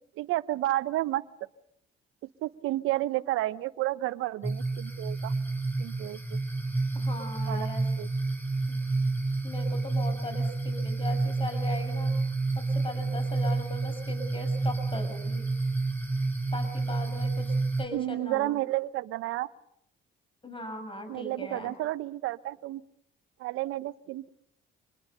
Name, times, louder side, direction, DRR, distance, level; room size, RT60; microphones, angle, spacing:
voice 1, 0.2-1.2 2.4-5.3 5.8-6.4 7.5-7.7 8.0-8.1 17.9-19.5 21.1-22.8 23.4-24.3, right 16 dB, 80° right, 17 dB, 0.8 m, -31 dB
sound 1, 4.4-17.8, right 3 dB, 10° left, 7.5 m, -29 dB
voice 2, 6.9-7.8 8.7-8.8 9.4-12.1 12.5-15.4 16.5-18.6 20.4-21.7, left 1 dB, 25° left, 7 dB, 6.4 m, -39 dB
26.0 x 21.0 x 6.7 m, 0.75 s
supercardioid pair, 70°, 21 cm